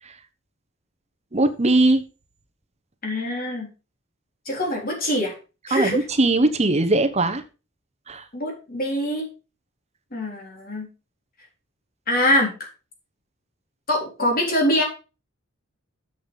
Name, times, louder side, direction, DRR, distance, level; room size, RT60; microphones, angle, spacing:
voice 1, 1.3-2.0 5.7-7.4 8.1-8.2, right 2 dB, 30° right, 8 dB, 1.0 m, -20 dB
voice 2, 3.0-3.7 4.5-5.4 5.7-6.0 8.3-9.3 10.1-10.9 12.1-12.7 13.9-14.8, left 1 dB, 45° left, 0 dB, 3.8 m, -24 dB
8.0 x 6.5 x 5.3 m, 0.32 s
head